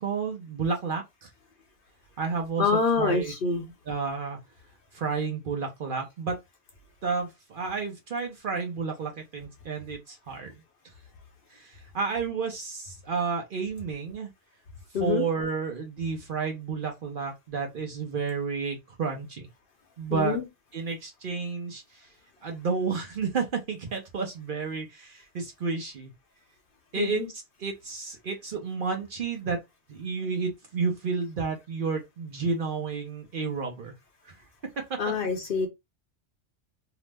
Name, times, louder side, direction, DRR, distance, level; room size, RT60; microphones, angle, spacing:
voice 1, 0.0-1.3 2.2-3.3 3.9-4.4 4.9-6.4 7.0-10.6 11.5-14.3 15.0-19.5 20.0-20.4 20.7-22.1 22.4-26.1 26.9-27.2 27.6-29.6 29.9-33.9 34.2-34.3 34.8-35.0, right 5 dB, 55° right, 0.7 m, -31 dB
voice 2, 2.6-3.6 14.9-15.2 20.1-20.4 27.0-27.3 35.0-35.7, left 4 dB, 55° left, 0.8 m, -26 dB
2.9 x 2.0 x 3.3 m
omnidirectional pair, 1.2 m